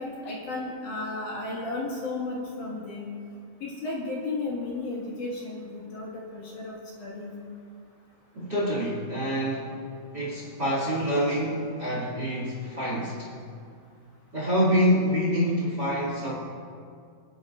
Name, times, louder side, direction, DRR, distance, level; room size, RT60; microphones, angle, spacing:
voice 1, 0.0-3.1 3.6-7.4, left 2 dB, 55° left, -5 dB, 2.8 m, -34 dB
voice 2, 8.3-9.7 10.1-13.3 14.3-16.3, equal, 35° right, -6 dB, 1.9 m, -26 dB
26.5 x 10.0 x 2.5 m, 2.3 s
omnidirectional pair, 4.9 m